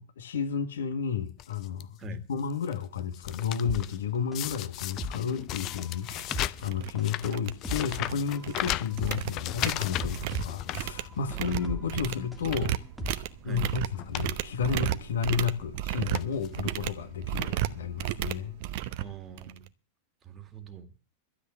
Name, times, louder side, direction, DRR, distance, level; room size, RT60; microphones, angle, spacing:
voice 1, 0.0-12.8 13.4-18.6, left 7 dB, 65° left, 1.8 m, -32 dB
sound 1, 1.4-1.8 2.4-2.7 3.0-4.0 4.3-11.4 11.8-12.0 12.4-12.8 13.6-13.7 13.9-14.3 14.6-14.7 15.6-15.8 16.1-16.6 17.4-17.5 17.7-17.8, left 14 dB, 35° left, 0.6 m, -36 dB
sound 2, 3.6-13.9 14.2-14.3, left 1 dB, 5° left, 2.2 m, -40 dB
sound 3, 5.6-5.7 6.1-6.3 6.6-6.9 7.2-8.1 8.4-19.7, right 14 dB, 50° right, 0.8 m, -34 dB
voice 2, 19.0-19.7 20.2-20.9, right 7 dB, 25° right, 2.1 m, -44 dB
12.5 x 8.3 x 7.7 m
figure-of-eight pair, 90°, 0 cm